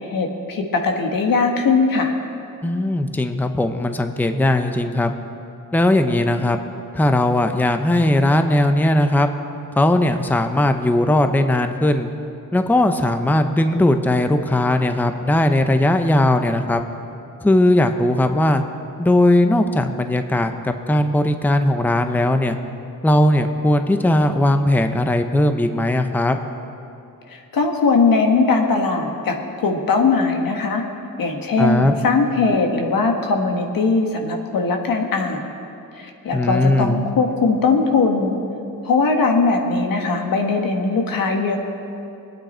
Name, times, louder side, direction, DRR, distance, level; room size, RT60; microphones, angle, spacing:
voice 1, 0.0-2.1 27.3-30.8 31.2-35.5 35.9-38.4 38.8-41.6, left 4 dB, 85° left, 3 dB, 1.5 m, -20 dB
voice 2, 2.6-5.1 5.7-6.6 6.9-9.3 9.8-12.1 12.5-16.8 17.4-18.6 19.0-22.6 23.0-26.4 31.6-32.0 36.3-37.0, left 1 dB, 5° left, 7 dB, 0.6 m, -18 dB
22.5 x 9.1 x 4.4 m, 2.7 s
wide cardioid pair, 120°, 33 cm